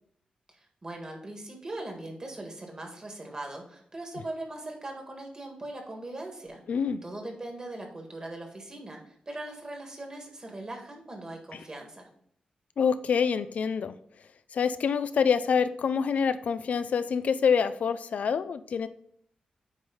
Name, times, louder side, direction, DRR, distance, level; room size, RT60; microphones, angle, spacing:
voice 1, 0.5-6.6 7.0-12.1, right 2 dB, 30° right, 2 dB, 1.7 m, -40 dB
voice 2, 6.7-7.0 12.8-13.9 14.5-18.9, left 6 dB, 70° left, 12 dB, 0.4 m, -26 dB
9.0 x 3.2 x 3.8 m, 0.66 s
wide cardioid pair, 100°, 3 cm